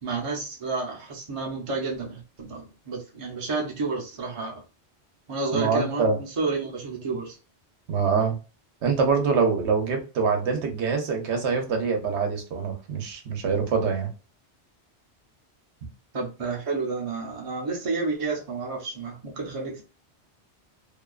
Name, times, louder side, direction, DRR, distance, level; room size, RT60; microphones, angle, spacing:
voice 1, 0.0-4.6 5.3-7.4 16.1-19.8, right 3 dB, 35° right, 0.6 m, -30 dB
voice 2, 5.5-6.2 7.9-8.4 8.8-14.1, right 5 dB, 80° right, 1.0 m, -24 dB
2.6 x 2.2 x 2.3 m
omnidirectional pair, 1.1 m